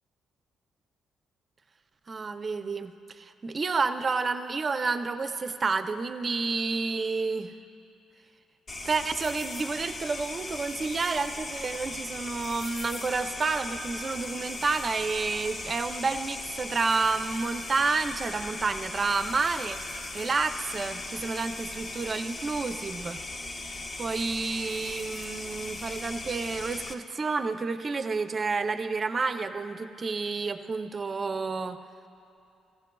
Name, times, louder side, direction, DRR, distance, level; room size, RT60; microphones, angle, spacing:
voice 1, 2.1-7.5 8.8-19.8 20.1-23.2 24.0-31.8, right 4 dB, 40° right, 8 dB, 0.6 m, -30 dB
sound 1, 8.7-26.9, left 2 dB, 45° left, 0.9 m, -38 dB
17.0 x 15.0 x 2.3 m, 2.8 s
cardioid pair, 90°, 0 cm